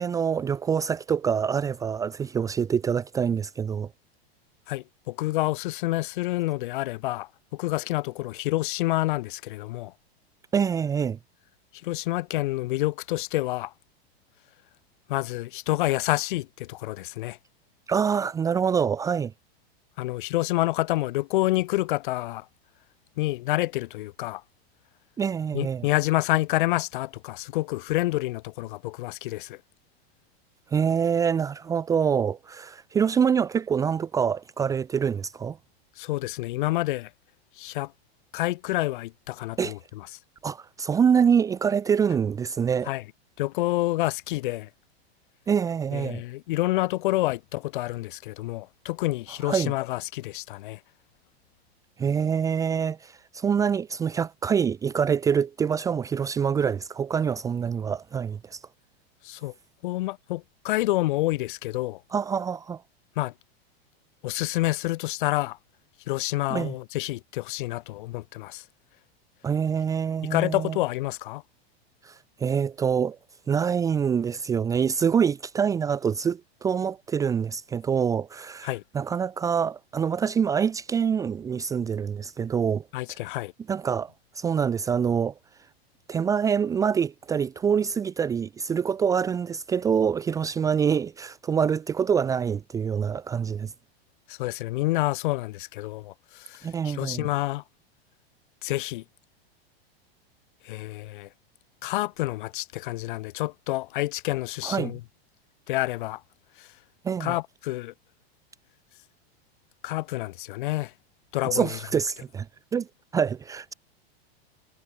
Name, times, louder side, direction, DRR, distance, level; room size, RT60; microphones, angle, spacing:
voice 1, 0.0-3.9 10.5-11.2 17.9-19.3 25.2-25.9 30.7-35.6 39.6-39.7 40.4-42.9 45.5-46.2 49.4-49.7 52.0-58.6 62.1-62.8 66.5-66.7 69.4-70.8 72.0-73.2 73.5-82.9 83.7-85.3 86.1-93.7 96.6-97.3 104.6-104.9 107.0-107.3 111.5-112.5 112.7-112.9 113.1-113.7, right 7 dB, 10° right, 1.1 m, -25 dB
voice 2, 4.7-9.9 11.8-13.7 15.1-17.4 20.0-22.5 23.2-24.4 25.5-29.6 36.0-37.1 37.6-37.9 38.3-40.1 42.8-43.0 43.4-44.7 45.9-50.8 59.2-59.5 59.8-62.0 63.2-63.3 64.2-65.6 66.1-68.6 70.3-71.4 78.6-78.8 82.9-83.5 94.3-97.6 98.6-99.0 100.6-101.3 101.8-105.0 105.7-106.2 106.6-106.7 107.2-107.9 109.8-110.9 111.3-111.8, left 18 dB, 50° left, 7.7 m, -28 dB
supercardioid pair, 170°, 32 cm